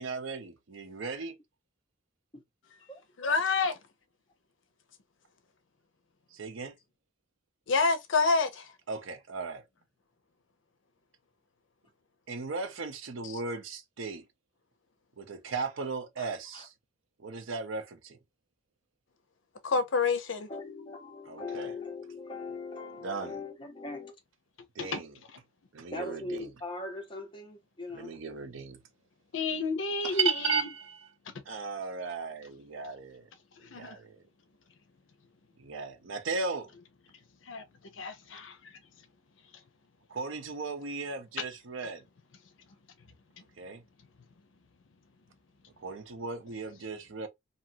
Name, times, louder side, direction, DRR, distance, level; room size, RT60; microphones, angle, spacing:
voice 1, 0.0-1.4 6.3-6.8 8.9-9.6 12.3-14.2 15.2-16.7 17.2-18.2 21.3-21.7 23.0-23.4 24.8-25.1 25.7-26.5 27.9-28.8 30.1-31.1 31.5-33.3 33.7-34.2 35.6-36.7 40.1-42.0 43.6-43.8 45.8-47.3, right 4 dB, 85° right, 0.6 m, -36 dB
voice 2, 3.2-3.8 7.7-8.7 13.2-13.4 19.6-20.5 24.9-25.0 29.3-30.6 33.6-34.0 37.5-37.6 38.0-38.6, left 4 dB, 75° left, 0.6 m, -28 dB
voice 3, 16.2-16.7 20.5-24.1 25.9-28.2, left 3 dB, 25° left, 0.8 m, -40 dB
2.7 x 2.5 x 2.7 m
head